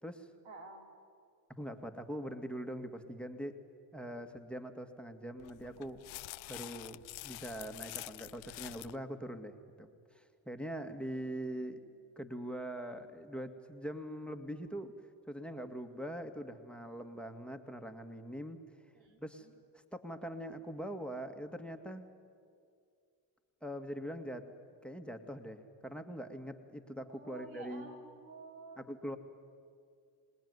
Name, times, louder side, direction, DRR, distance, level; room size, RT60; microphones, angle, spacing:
voice 1, 0.4-0.9 18.9-19.5 27.1-28.8, right 3 dB, 90° right, 3 dB, 3.4 m, -52 dB
voice 2, 1.5-3.6 3.9-6.0 6.5-11.8 12.2-14.9 15.3-18.6 19.2-19.5 19.9-22.1 23.6-24.5 24.8-27.9 28.8-29.2, equal, ahead, 7 dB, 2.0 m, -42 dB
sound 1, 5.4-9.0, left 20 dB, 75° left, 0.6 m, -47 dB
26.0 x 20.0 x 9.7 m, 2.3 s
supercardioid pair, 70°, 46 cm